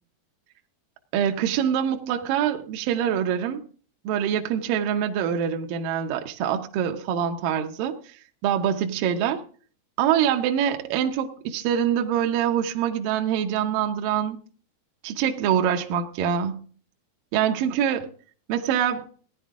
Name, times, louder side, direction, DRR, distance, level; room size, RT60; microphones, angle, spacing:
voice 1, 1.1-3.6 4.1-8.0 8.4-9.4 10.0-14.4 15.0-16.6 17.3-18.1 18.5-19.0, right 9 dB, 75° right, 4 dB, 2.1 m, -24 dB
17.5 x 10.5 x 3.6 m, 0.43 s
omnidirectional pair, 4.9 m